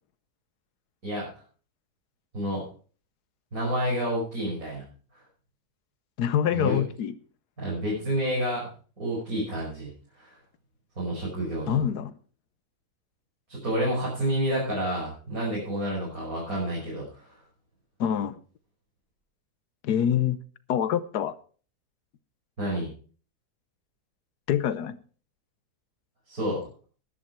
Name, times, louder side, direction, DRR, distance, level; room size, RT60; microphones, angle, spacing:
voice 1, 2.3-2.7 3.5-4.9 6.5-6.8 7.6-8.7 9.0-10.4 11.0-11.8 13.5-17.3 22.6-22.9 26.3-26.6, right 1 dB, 60° right, 6.1 m, -29 dB
voice 2, 6.2-7.1 11.7-12.1 18.0-18.4 19.8-20.4 20.7-21.3 24.5-25.0, left 9 dB, 85° left, 1.4 m, -25 dB
13.5 x 11.0 x 4.5 m
omnidirectional pair, 1.7 m